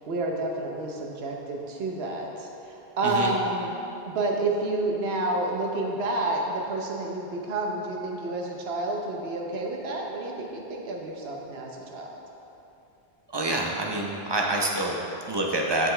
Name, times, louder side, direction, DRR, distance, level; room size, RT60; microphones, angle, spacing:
voice 1, 0.1-3.8 4.0-12.2, right 2 dB, 75° right, 0 dB, 1.1 m, -29 dB
voice 2, 13.3-15.9, right 2 dB, 30° right, -1 dB, 0.6 m, -27 dB
7.7 x 6.9 x 3.3 m, 2.8 s
omnidirectional pair, 1.1 m